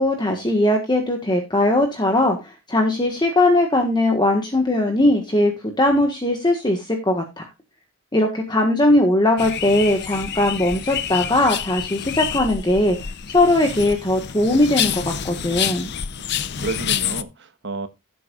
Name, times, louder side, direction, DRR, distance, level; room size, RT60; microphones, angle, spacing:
voice 1, 0.0-7.5 8.1-15.9, left 1 dB, 20° left, 1.5 m, -19 dB
sound 1, 9.4-17.2, left 9 dB, 50° left, 0.7 m, -28 dB
voice 2, 16.2-17.9, right 3 dB, 55° right, 1.4 m, -31 dB
16.0 x 8.3 x 2.4 m
head